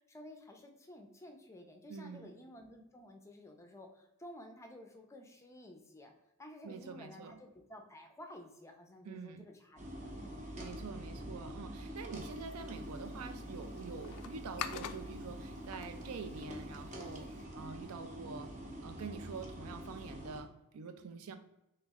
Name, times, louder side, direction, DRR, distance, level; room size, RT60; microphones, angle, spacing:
voice 1, 0.0-6.1 6.4-10.5, left 1 dB, 15° left, 0.5 m, -53 dB
voice 2, 1.9-2.3 6.6-7.4 9.0-9.5 10.6-18.5 18.8-21.3, right 5 dB, 70° right, 0.4 m, -46 dB
sound 1, 9.8-20.4, equal, 35° right, 0.7 m, -46 dB
sound 2, 12.3-17.4, left 8 dB, 75° left, 0.3 m, -48 dB
3.3 x 3.1 x 3.5 m
head